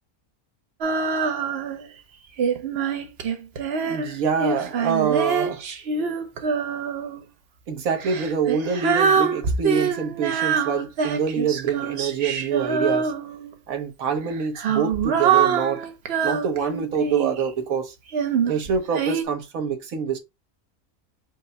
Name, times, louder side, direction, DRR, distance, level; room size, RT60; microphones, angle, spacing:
Female singing, 0.8-1.9 2.4-7.2 8.0-13.5 14.3-17.4 18.1-19.2, right 6 dB, 55° right, 0.8 m, -24 dB
voice 1, 3.8-5.6 7.7-13.1 13.7-15.8 16.2-17.9 18.5-20.2, right 6 dB, 70° right, 1.4 m, -25 dB
5.4 x 2.2 x 3.9 m
omnidirectional pair, 1.5 m